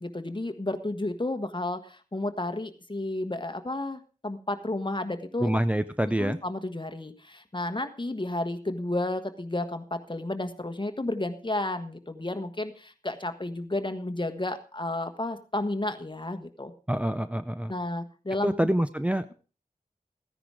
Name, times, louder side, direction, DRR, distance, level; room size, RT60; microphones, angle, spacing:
voice 1, 0.0-5.5 6.2-16.7 17.7-18.5, left 2 dB, 35° left, 8 dB, 1.5 m, -32 dB
voice 2, 5.4-6.4 16.9-17.7 18.4-19.3, right 1 dB, 10° right, 10 dB, 0.6 m, -26 dB
15.0 x 10.0 x 4.9 m, 0.38 s
wide cardioid pair, 60°, 15 cm